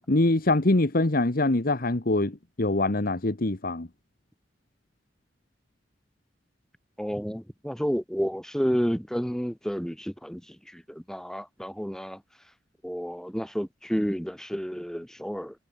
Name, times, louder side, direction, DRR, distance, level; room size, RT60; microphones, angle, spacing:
voice 1, 0.1-3.9, left 2 dB, 50° left, 1.3 m, -24 dB
voice 2, 7.0-12.2 12.8-15.6, equal, 5° left, 5.9 m, -30 dB
head